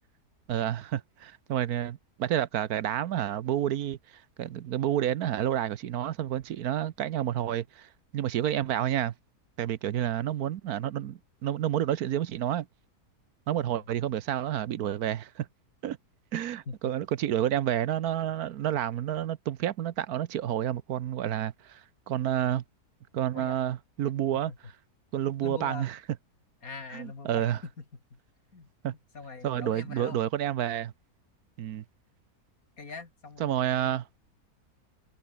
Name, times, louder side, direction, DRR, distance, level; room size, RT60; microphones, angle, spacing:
voice 1, 0.5-9.1 9.6-12.7 13.5-15.5 15.8-16.0 16.3-22.6 23.1-24.5 25.1-26.0 26.9-27.6 28.8-28.9 29.4-30.9 31.6-31.8 33.4-34.1, right 11 dB, 75° right, 1.3 m, -29 dB
voice 2, 13.5-13.9 16.7-16.8 23.3-23.6 24.5-24.6 25.4-25.9 26.6-27.8 28.1-28.2 28.5-28.7 29.1-30.2 32.8-34.0, left 4 dB, 65° left, 3.3 m, -42 dB
omnidirectional pair, 1.6 m